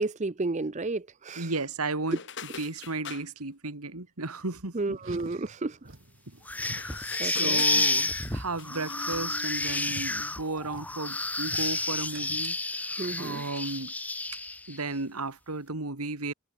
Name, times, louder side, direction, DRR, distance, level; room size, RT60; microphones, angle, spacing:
voice 1, 0.0-1.5 2.1-2.2 4.7-5.8 7.2-7.6 13.0-13.4, right 3 dB, 30° right, 0.5 m, -31 dB
voice 2, 1.4-2.2 2.6-5.0 6.3-6.4 7.2-13.9 14.7-16.3, right 3 dB, 85° right, 2.5 m, -34 dB
sound 1, 2.1-3.3 6.5-9.3 9.6-10.0, left 7 dB, 55° left, 3.0 m, -44 dB
Car, 4.9-13.9, right 2 dB, 60° right, 2.4 m, -48 dB
sound 2, 6.5-14.8, left 2 dB, 5° left, 0.7 m, -30 dB
head